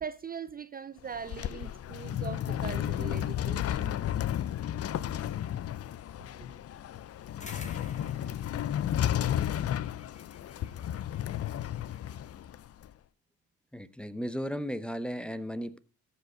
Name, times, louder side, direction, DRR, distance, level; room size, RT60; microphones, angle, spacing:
voice 1, 0.0-4.0 6.3-6.5, right 7 dB, 30° right, 0.4 m, -41 dB
sound 1, 1.0-12.9, left 11 dB, 50° left, 0.6 m, -33 dB
sound 2, 7.4-12.3, left 3 dB, 25° left, 1.7 m, -51 dB
voice 2, 13.7-15.8, equal, 5° left, 0.7 m, -35 dB
14.5 x 5.3 x 5.0 m
cardioid pair, 90°, 30 cm